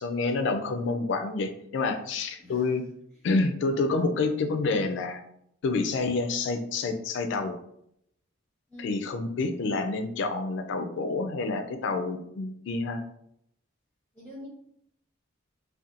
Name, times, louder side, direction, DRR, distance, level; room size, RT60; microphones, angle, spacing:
voice 1, 0.0-2.8 3.2-5.2 5.6-7.5 8.8-13.0, left 3 dB, 65° left, 6 dB, 0.3 m, -28 dB
voice 2, 8.7-9.0 14.1-14.5, left 1 dB, 5° left, -5 dB, 0.6 m, -44 dB
2.7 x 2.2 x 2.4 m, 0.72 s
head